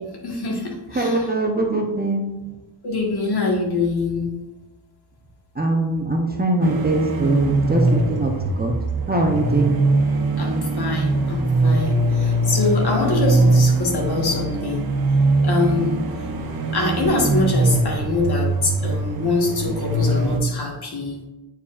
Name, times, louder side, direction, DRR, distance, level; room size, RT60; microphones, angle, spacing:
voice 1, 0.2-1.3 2.8-4.3 10.4-14.9 15.4-16.0 16.7-21.2, left 3 dB, 55° left, 0 dB, 1.5 m, -24 dB
voice 2, 0.9-2.4 5.6-8.7 9.1-9.8, right 2 dB, 20° right, 1 dB, 0.6 m, -22 dB
sound 1, 6.6-20.4, right 2 dB, 50° right, 0.8 m, -21 dB
8.4 x 4.6 x 2.4 m, 1.1 s
wide cardioid pair, 130°, 46 cm